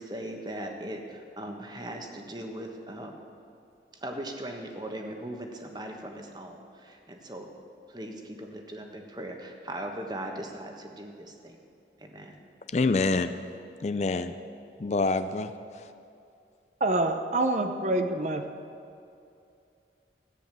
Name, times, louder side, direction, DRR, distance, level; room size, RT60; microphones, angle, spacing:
voice 1, 0.0-3.1 3.9-7.5 7.9-11.6 12.0-12.4, right 1 dB, 25° right, 3 dB, 1.4 m, -39 dB
voice 2, 12.7-13.3 13.8-14.3 14.8-15.9, left 3 dB, 40° left, 11 dB, 0.4 m, -27 dB
voice 3, 16.8-18.4, right 2 dB, 40° right, 6 dB, 0.7 m, -26 dB
14.0 x 9.8 x 7.5 m, 2.6 s
head